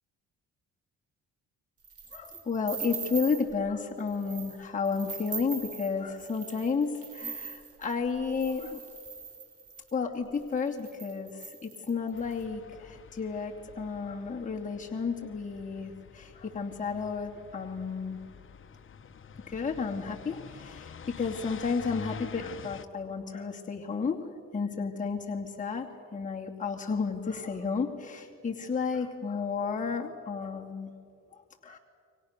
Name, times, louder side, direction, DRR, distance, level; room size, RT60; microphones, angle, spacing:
sound 1, 1.8-3.5 4.0-4.6 4.8-9.9 10.5-10.6 10.8-12.3, right 6 dB, 50° right, 4.9 m, -41 dB
voice 1, 2.1-8.8 9.9-18.2 19.5-30.9 31.6-31.8, left 5 dB, 25° left, -1 dB, 2.7 m, -32 dB
sound 2, 12.1-22.8, left 6 dB, 40° left, 1.3 m, -47 dB
29.5 x 24.5 x 6.8 m, 2.3 s
cardioid pair, 90°, 30 cm